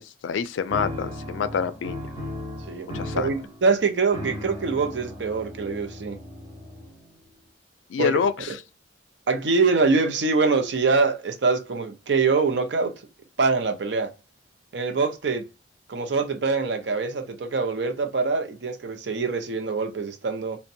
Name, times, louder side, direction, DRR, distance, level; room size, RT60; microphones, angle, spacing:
voice 1, 0.0-2.0 2.9-3.3 7.9-8.5, left 6 dB, 85° left, 0.3 m, -27 dB
sound 1, 0.7-7.2, left 1 dB, 20° right, 0.7 m, -36 dB
voice 2, 3.1-6.2 8.0-8.2 9.3-12.9 13.4-14.1 14.7-15.4 15.9-20.6, right 4 dB, 70° right, 0.6 m, -24 dB
2.7 x 2.1 x 2.5 m
head